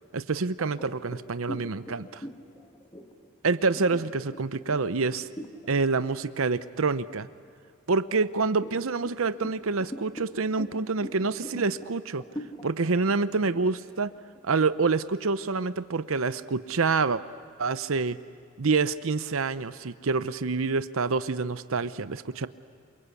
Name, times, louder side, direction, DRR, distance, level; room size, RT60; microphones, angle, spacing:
voice 1, 0.1-2.2 3.4-5.3 5.7-7.3 7.9-12.2 12.6-14.1 14.4-17.2 17.6-18.2 18.6-22.5, right 4 dB, 75° right, 13 dB, 0.7 m, -27 dB
sound 1, 0.6-5.7 6.2-6.4 6.8-7.7 8.2-14.9, equal, 20° left, 1.7 m, -43 dB
28.0 x 24.0 x 8.3 m, 2.3 s
head